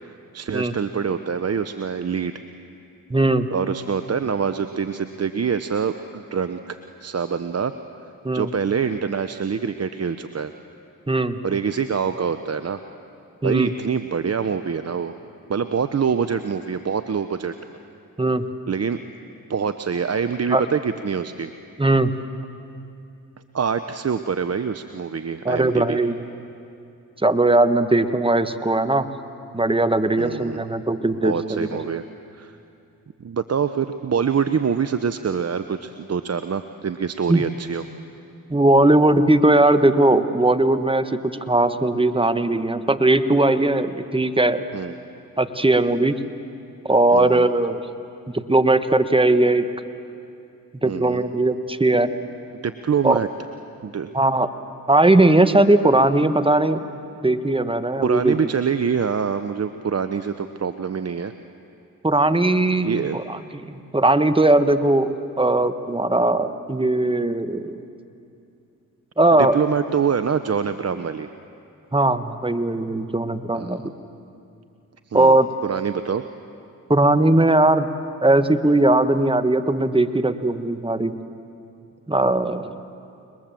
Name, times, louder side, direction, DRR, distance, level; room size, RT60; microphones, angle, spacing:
voice 1, 0.0-2.3 3.5-7.7 8.3-10.5 11.4-12.8 13.4-15.1 15.5-17.5 18.7-19.0 19.5-21.5 23.5-26.0 30.2-30.6 31.2-32.0 32.3-32.6 33.2-37.8 44.7-44.9 47.1-47.5 50.8-51.2 52.6-53.3 53.8-54.1 58.0-61.3 62.8-63.2 69.4-71.3 73.5-73.9 75.1-75.4 75.6-76.2, right 6 dB, 45° right, 10 dB, 0.9 m, -25 dB
voice 2, 3.1-3.5 8.2-8.5 11.1-11.4 13.4-13.7 18.2-18.5 20.5-20.6 21.8-22.1 25.4-26.2 27.2-29.1 29.5-31.8 37.3-37.4 38.5-44.6 45.4-46.2 46.8-47.8 48.3-49.7 50.8-52.1 53.0-53.2 54.1-54.5 54.9-56.8 57.2-58.4 62.0-67.8 69.2-69.6 71.9-73.8 75.1-75.5 76.9-77.9 78.2-81.1 82.1-82.7, right 2 dB, 15° right, 10 dB, 1.5 m, -19 dB
29.5 x 21.0 x 7.6 m, 2.6 s
supercardioid pair, 45°, 36 cm